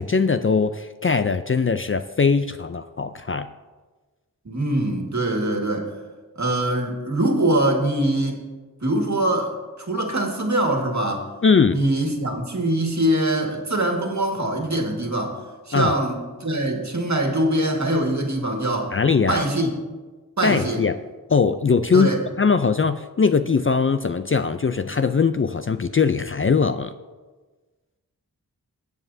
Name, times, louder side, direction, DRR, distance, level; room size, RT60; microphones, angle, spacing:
voice 1, 0.0-3.5 11.4-11.8 15.7-16.0 18.9-19.4 20.4-21.0 21.3-22.1 22.4-26.9, left 5 dB, 35° left, 10 dB, 0.4 m, -20 dB
voice 2, 4.4-5.9 6.3-8.4 8.8-9.5 9.8-11.3 11.7-15.4 15.7-18.9 19.3-19.7 20.4-20.8 21.9-22.2, right 1 dB, 50° right, 2 dB, 1.8 m, -23 dB
18.5 x 8.1 x 2.7 m, 1.3 s
cardioid pair, 45°, 37 cm